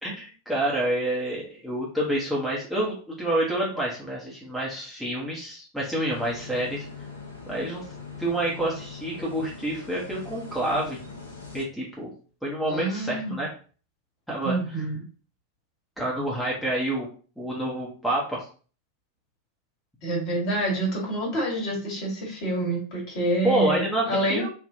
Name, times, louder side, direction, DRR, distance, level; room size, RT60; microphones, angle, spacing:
voice 1, 0.0-6.9 7.5-7.8 8.2-11.0 11.5-12.1 12.4-13.5 14.3-14.5 16.0-17.1 17.4-18.4 23.4-24.5, right 1 dB, ahead, -5 dB, 0.9 m, -28 dB
sound 1, 6.1-11.6, left 5 dB, 75° left, 0.8 m, -41 dB
voice 2, 12.7-13.4 14.4-15.0 20.0-24.4, right 1 dB, 45° left, -2 dB, 1.6 m, -27 dB
3.4 x 2.5 x 2.7 m, 0.39 s
figure-of-eight pair, 90°, 0 cm